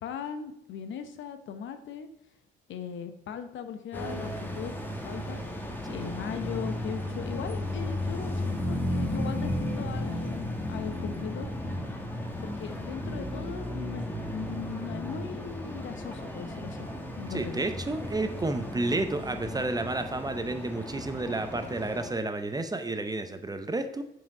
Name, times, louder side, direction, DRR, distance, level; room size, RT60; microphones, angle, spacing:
voice 1, 0.0-2.1 2.7-4.7 5.0-5.4 5.9-11.5 12.4-16.9 17.2-17.6, left 7 dB, 70° left, 9 dB, 0.8 m, -39 dB
sound 1, 3.9-22.1, left 1 dB, 10° left, 1.1 m, -34 dB
voice 2, 17.3-24.0, right 2 dB, 20° right, 8 dB, 0.6 m, -31 dB
6.0 x 4.9 x 4.8 m, 0.83 s
cardioid pair, 90°, 20 cm